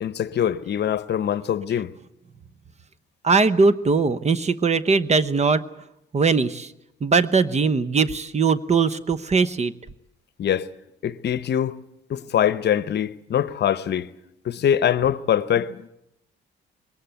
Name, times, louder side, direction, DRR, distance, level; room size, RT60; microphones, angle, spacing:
voice 1, 0.0-1.9 10.4-10.7 11.0-11.8 12.1-14.1 14.4-15.9, left 9 dB, 60° left, 0.8 m, -23 dB
voice 2, 3.2-5.6 6.1-6.7 7.0-9.7, right 4 dB, 35° right, 0.9 m, -20 dB
21.0 x 18.0 x 9.2 m
cardioid pair, 90°, 20 cm